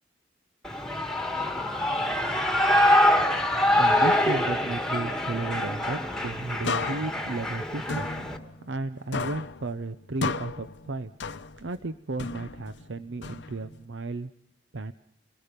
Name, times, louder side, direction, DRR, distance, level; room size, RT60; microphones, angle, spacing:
Shout / Cheering, 0.6-8.4, left 1 dB, 5° left, 1.6 m, -25 dB
voice 1, 3.7-8.1 8.7-11.1 11.6-14.3 14.7-14.9, right 2 dB, 85° right, 11 dB, 0.7 m, -34 dB
sound 1, 6.6-8.9 9.1-11.8 12.2-13.9, left 4 dB, 75° left, 0.8 m, -35 dB
29.0 x 19.5 x 5.2 m, 0.73 s
head